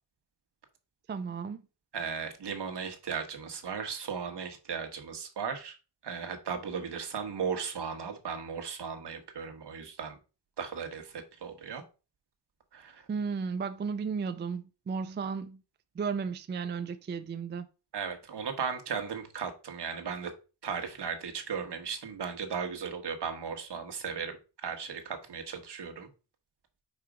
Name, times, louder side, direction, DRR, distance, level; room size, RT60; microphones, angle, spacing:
voice 1, 1.1-1.6 13.1-15.6 16.0-17.7, right 5 dB, 25° right, 0.4 m, -34 dB
voice 2, 1.9-5.7 6.0-10.2 10.6-11.8 12.7-13.0 17.9-20.3 20.6-26.1, right 6 dB, 65° right, 1.4 m, -36 dB
5.1 x 4.8 x 4.9 m
wide cardioid pair, 140°, 43 cm